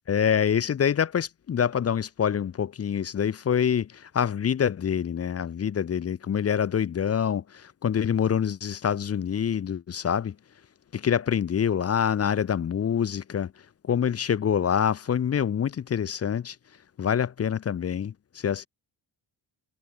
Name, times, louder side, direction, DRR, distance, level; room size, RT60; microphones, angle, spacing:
voice 1, 0.1-10.3 10.9-13.5 13.8-16.6 17.0-18.7, left 8 dB, 35° left, 0.4 m, -26 dB
wide cardioid pair, 160°, 49 cm